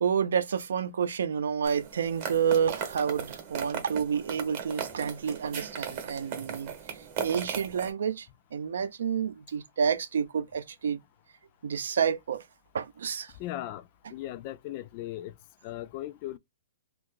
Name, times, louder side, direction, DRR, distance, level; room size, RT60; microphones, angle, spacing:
voice 1, 0.0-11.0 11.6-12.4 12.7-13.3, right 7 dB, 75° right, 0.5 m, -29 dB
sound 1, 1.6-7.9, right 8 dB, 35° right, 0.9 m, -37 dB
voice 2, 13.4-13.8 14.1-15.3 15.6-16.4, left 14 dB, 35° left, 0.3 m, -37 dB
2.6 x 2.5 x 3.7 m
hypercardioid pair, 160°, 0 cm